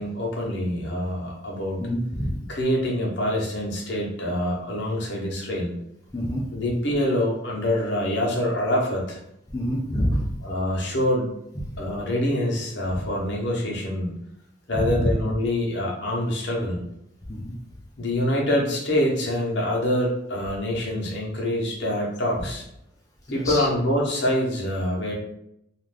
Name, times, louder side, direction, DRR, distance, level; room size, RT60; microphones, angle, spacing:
voice 1, 0.0-1.8 2.5-5.8 6.5-9.2 10.4-11.4 11.8-14.1 14.7-16.8 18.0-22.7 23.3-25.1, left 1 dB, 55° left, -2 dB, 0.8 m, -25 dB
voice 2, 1.8-2.3 6.1-6.4 9.5-10.3 14.7-15.1 17.3-17.5 23.3-23.7, equal, 15° left, -4 dB, 0.4 m, -26 dB
2.4 x 2.4 x 3.3 m, 0.77 s
head